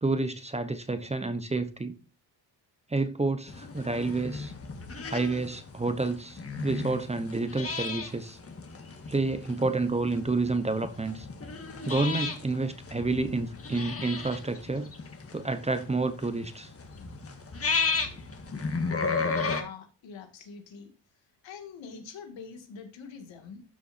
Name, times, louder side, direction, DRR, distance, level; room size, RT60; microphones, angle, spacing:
voice 1, 0.0-1.9 2.9-4.5 5.1-8.4 9.1-11.3 11.8-14.9 15.3-16.7, right 3 dB, 15° right, 0.9 m, -29 dB
sound 1, 3.5-19.6, left 4 dB, 30° left, 1.7 m, -34 dB
voice 2, 19.4-20.9 21.4-23.6, left 5 dB, 80° left, 2.3 m, -44 dB
12.5 x 7.0 x 2.7 m
cardioid pair, 115°, 44 cm